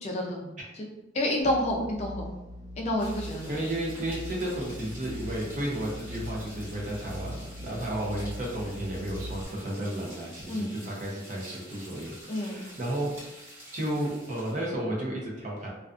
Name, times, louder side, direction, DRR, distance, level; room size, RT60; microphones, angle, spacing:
voice 1, 0.0-0.8 1.1-2.3 2.8-3.5 10.5-10.7 12.3-12.7, left 1 dB, 35° left, -1 dB, 0.4 m, -29 dB
sound 1, 1.4-9.4, left 1 dB, 90° left, 0.7 m, -41 dB
sound 2, 3.0-14.7, equal, 15° right, 0.9 m, -48 dB
voice 2, 3.5-15.7, right 1 dB, 40° right, -3 dB, 0.6 m, -33 dB
2.4 x 2.4 x 2.4 m, 0.98 s
head